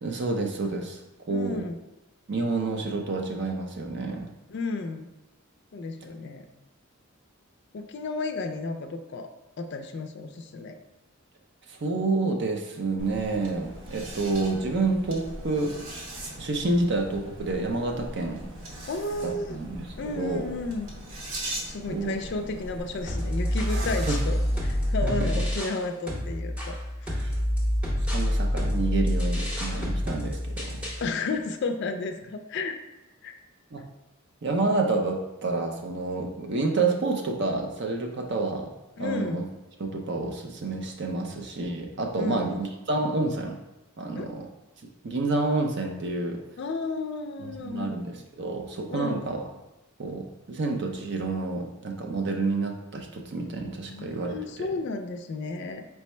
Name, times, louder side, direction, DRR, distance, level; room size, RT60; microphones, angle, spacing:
voice 1, 0.0-1.0 1.3-1.6 2.3-4.3 11.7-16.0 16.4-18.4 19.2-20.5 21.9-22.2 23.7-23.8 24.1-24.2 25.0-25.3 27.1-27.4 28.1-30.9 33.7-33.8 34.4-38.7 39.0-39.4 39.8-43.6 44.0-44.5 45.0-46.4 47.4-49.4 50.0-54.7, right 3 dB, 55° right, 3 dB, 0.5 m, -29 dB
voice 2, 1.3-1.8 4.5-5.1 5.7-6.5 7.7-9.3 9.6-10.8 18.9-19.6 20.0-20.9 21.7-27.1 31.0-32.8 33.2-33.3 39.0-39.5 42.1-42.5 44.2-44.3 46.6-47.9 48.9-49.2 53.9-55.9, left 3 dB, 55° left, 7 dB, 0.3 m, -32 dB
sound 1, 13.0-24.9, right 1 dB, 75° right, 0.9 m, -40 dB
sound 2, 23.1-25.8 26.1-31.1, equal, 5° right, 0.7 m, -27 dB
4.5 x 2.0 x 4.3 m, 0.99 s
head